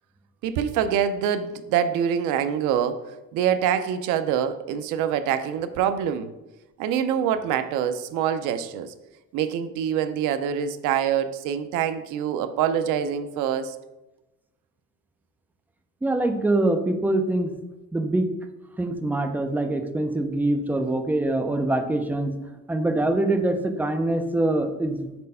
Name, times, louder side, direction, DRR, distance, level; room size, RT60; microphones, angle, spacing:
voice 1, 0.4-6.3 6.8-8.9 9.3-13.8, right 9 dB, 80° right, 11 dB, 0.5 m, -25 dB
voice 2, 16.0-17.5 17.9-18.3 18.8-22.3 22.7-25.1, right 2 dB, 5° right, 6 dB, 0.3 m, -24 dB
4.3 x 4.1 x 5.4 m, 1.0 s
cardioid pair, 155°, 31 cm